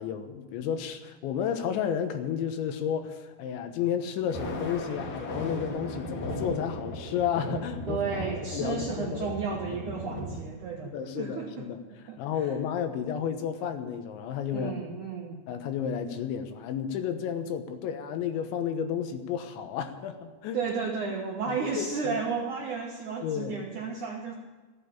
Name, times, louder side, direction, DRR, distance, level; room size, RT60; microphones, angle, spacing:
voice 1, 0.0-8.0 8.5-9.3 10.9-11.8 12.2-14.7 15.5-20.6 21.5-22.2 23.2-23.6, left 8 dB, 80° left, 7 dB, 3.5 m, -32 dB
Thunder, 4.2-10.4, equal, 45° left, 2.9 m, -36 dB
voice 2, 7.9-11.7 12.1-12.5 14.5-15.4 20.5-24.3, right 5 dB, 70° right, 0 dB, 1.9 m, -33 dB
15.0 x 9.4 x 8.5 m, 1.3 s
omnidirectional pair, 5.3 m